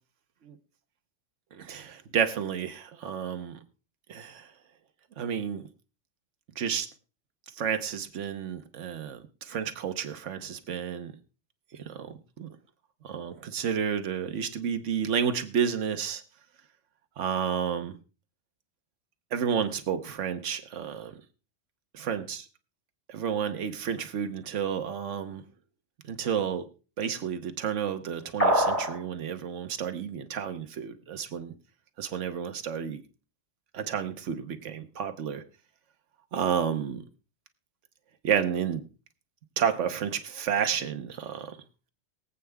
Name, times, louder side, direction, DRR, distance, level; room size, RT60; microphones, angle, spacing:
voice 1, 1.5-3.6 4.1-4.5 5.2-5.7 6.6-6.9 7.6-11.1 11.9-12.1 12.4-12.5 13.0-16.2 17.2-17.9 19.3-21.2 21.9-22.4 23.1-25.4 26.1-26.6 27.0-31.5 32.0-33.0 33.7-35.4 36.3-37.0 38.2-38.8 39.6-41.6, right 8 dB, 75° right, 8 dB, 1.3 m, -31 dB
sound 1, 28.4-29.0, right 1 dB, 70° left, 4.4 m, -23 dB
22.5 x 8.3 x 2.3 m, 0.35 s
omnidirectional pair, 1.3 m